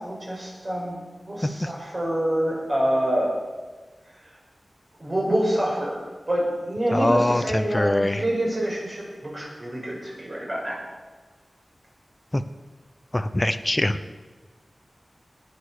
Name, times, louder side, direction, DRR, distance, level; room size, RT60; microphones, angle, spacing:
voice 1, 0.0-3.3 5.0-6.0 6.3-10.8, right 1 dB, 40° right, -4 dB, 6.6 m, -26 dB
voice 2, 6.9-8.2 12.3-12.4 13.1-14.0, left 1 dB, 20° left, 10 dB, 0.9 m, -23 dB
19.5 x 8.7 x 6.7 m, 1.3 s
wide cardioid pair, 90°, 0 cm